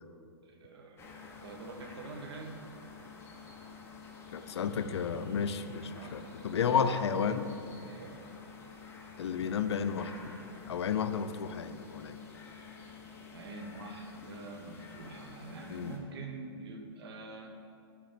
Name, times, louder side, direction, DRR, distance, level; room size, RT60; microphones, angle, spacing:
voice 1, 0.4-1.1 1.4-2.6 6.0-6.2 6.5-7.0 7.8-8.2 13.3-17.5, right 3 dB, 65° right, 3 dB, 1.0 m, -45 dB
sound 1, 1.0-16.0, left 5 dB, 15° left, 0.8 m, -50 dB
voice 2, 4.3-7.5 9.2-10.1 10.7-12.2 15.7-15.9, left 7 dB, 80° left, 11 dB, 0.4 m, -32 dB
5.6 x 4.3 x 5.8 m, 2.4 s
hypercardioid pair, 130°, 14 cm